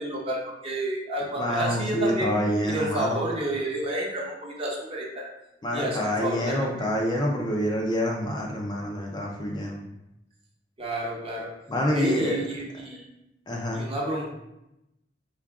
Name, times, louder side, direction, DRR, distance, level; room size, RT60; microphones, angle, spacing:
voice 1, 0.0-2.4 2.7-5.2 5.7-6.9 10.8-11.5 11.9-13.0 13.7-14.3, right 1 dB, 30° right, -3 dB, 0.8 m, -30 dB
voice 2, 1.4-3.2 5.6-9.8 11.7-12.4 13.5-13.9, equal, 25° left, -1 dB, 0.4 m, -27 dB
3.8 x 2.4 x 3.4 m, 0.88 s
head